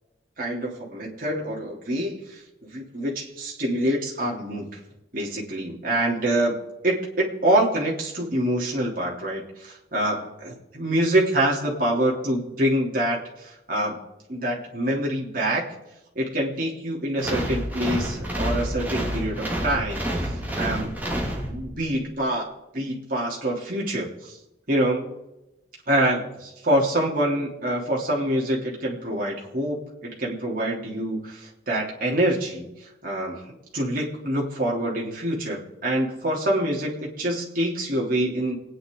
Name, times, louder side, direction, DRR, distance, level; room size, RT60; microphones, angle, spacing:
voice 1, 0.4-2.4 2.7-4.7 5.1-6.5 6.8-14.0 14.3-15.6 16.1-21.0 21.5-22.5 22.7-24.4 24.7-25.0 25.9-32.7 33.0-33.4 33.7-38.5, right 1 dB, 45° right, -3 dB, 3.3 m, -26 dB
sound 1, 17.2-21.9, equal, 10° right, 2.4 m, -28 dB
29.0 x 9.9 x 3.9 m, 0.96 s
head